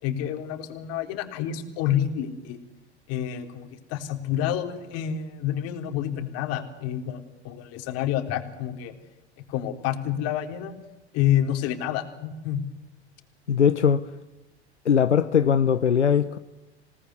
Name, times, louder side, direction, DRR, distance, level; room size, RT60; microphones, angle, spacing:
voice 1, 0.0-2.6 3.1-9.0 9.5-10.7 11.1-12.6, left 10 dB, 45° left, 3.8 m, -28 dB
voice 2, 13.5-14.0 14.8-16.4, left 7 dB, 85° left, 1.0 m, -20 dB
27.5 x 19.0 x 9.7 m
figure-of-eight pair, 90°, 34 cm